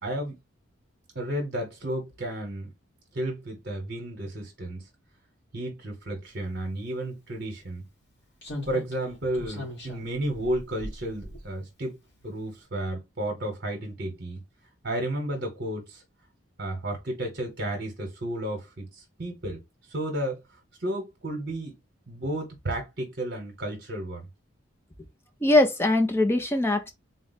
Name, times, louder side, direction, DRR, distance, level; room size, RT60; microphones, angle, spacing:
voice 1, 0.0-0.4 1.1-2.7 3.1-4.8 5.5-7.9 8.7-12.0 12.2-14.4 14.8-16.0 16.6-19.6 19.9-20.4 20.8-21.8 22.1-24.3, right 1 dB, 55° right, 1.0 m, -32 dB
Slam, 7.0-7.1 8.4-11.9 12.2-12.4, left 1 dB, 55° left, 2.1 m, -40 dB
voice 2, 25.4-26.9, left 2 dB, 10° left, 0.5 m, -21 dB
4.0 x 2.3 x 4.0 m
head